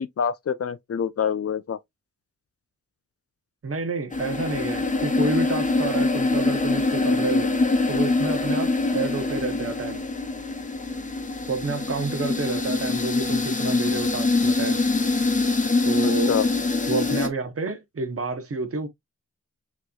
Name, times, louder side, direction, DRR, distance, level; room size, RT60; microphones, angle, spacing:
voice 1, 0.0-1.8 16.0-16.5, left 7 dB, 55° left, 0.4 m, -26 dB
voice 2, 3.6-7.5 7.9-10.0 11.5-14.8 15.8-16.3 16.9-18.9, right 4 dB, 50° right, 0.9 m, -29 dB
sound 1, 4.1-17.3, left 3 dB, 25° left, 0.8 m, -24 dB
6.0 x 3.0 x 2.3 m
wide cardioid pair, 140°, 29 cm